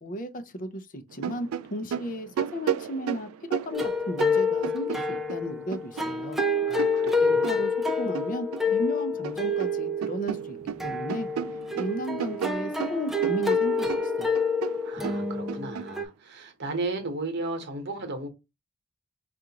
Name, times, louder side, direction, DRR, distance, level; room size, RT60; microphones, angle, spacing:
voice 1, 0.0-6.4 7.2-7.7 8.0-10.6 10.8-11.3 11.7-14.4, equal, 40° left, 0.6 m, -35 dB
sound 1, 1.1-5.4 5.7-8.7 9.0-9.8 10.0-15.9, right 9 dB, 90° right, 0.3 m, -34 dB
sound 2, 3.7-16.1, left 3 dB, ahead, 0.4 m, -28 dB
voice 2, 6.7-7.6 14.8-18.3, right 2 dB, 55° right, 1.0 m, -35 dB
4.9 x 2.5 x 2.8 m
head